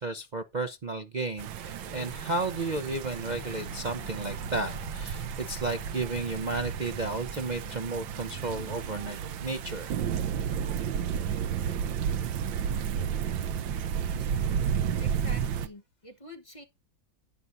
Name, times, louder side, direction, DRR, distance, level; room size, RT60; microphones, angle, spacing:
voice 1, 0.0-9.9, right 3 dB, 60° right, 0.4 m, -33 dB
sound 1, 1.4-11.9, left 6 dB, 45° left, 1.9 m, -49 dB
sound 2, 1.4-15.7, right 8 dB, 85° right, 1.5 m, -32 dB
voice 2, 15.0-16.6, left 1 dB, 20° left, 1.0 m, -47 dB
12.0 x 9.5 x 2.6 m
omnidirectional pair, 2.0 m